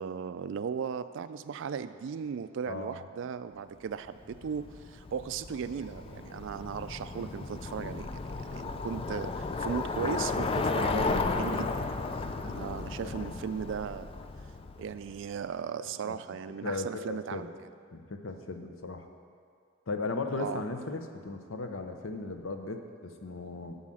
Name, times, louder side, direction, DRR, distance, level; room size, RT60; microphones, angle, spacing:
voice 1, 0.0-8.1 8.4-11.8 12.4-14.1 14.8-17.5 20.4-20.6, right 7 dB, 65° right, 13 dB, 0.3 m, -37 dB
voice 2, 2.7-3.0 13.0-13.4 15.9-16.2 16.6-17.5 17.9-19.1 19.9-23.8, left 3 dB, 75° left, 6 dB, 0.7 m, -37 dB
Bicycle, 4.3-15.2, left 3 dB, 30° left, 0.3 m, -34 dB
7.3 x 5.6 x 7.6 m, 2.2 s
head